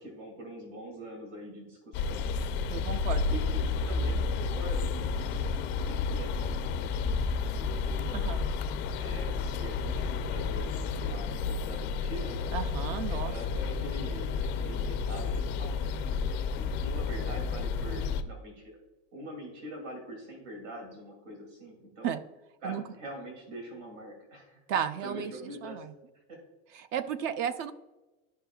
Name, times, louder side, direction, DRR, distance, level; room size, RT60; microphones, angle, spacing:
voice 1, 0.0-3.6 3.9-8.3 9.0-12.5 13.1-18.8 19.1-22.1 22.6-24.6 25.0-25.8 26.3-26.4, equal, 80° right, 1 dB, 2.5 m, -44 dB
sound 1, 1.9-18.2, left 4 dB, 30° left, 0.4 m, -31 dB
voice 2, 2.7-3.2 8.1-8.4 12.5-13.3 22.0-22.2 22.6-22.8 24.7-25.3 25.6-25.9 26.7-27.7, right 8 dB, 40° right, 14 dB, 0.4 m, -33 dB
10.5 x 5.6 x 2.3 m, 1.1 s
supercardioid pair, 145°, 37 cm